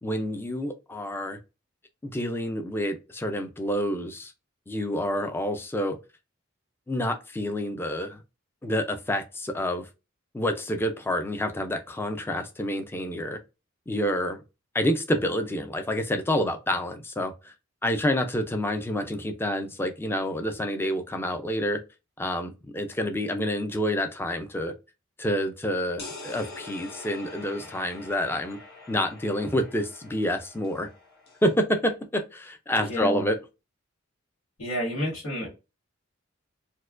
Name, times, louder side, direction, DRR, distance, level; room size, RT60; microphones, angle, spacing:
voice 1, 0.0-1.4 2.0-4.3 4.7-6.0 6.9-8.2 8.6-9.9 10.3-13.4 13.9-14.4 14.7-17.5 17.8-21.8 22.2-24.7 25.2-28.6 28.9-30.9 31.4-33.4, equal, 10° left, 0.4 m, -28 dB
sound 1, 26.0-31.6, left 3 dB, 50° left, 1.1 m, -44 dB
voice 2, 32.8-33.2 34.6-35.5, equal, 80° left, 1.7 m, -30 dB
4.4 x 2.2 x 2.4 m
head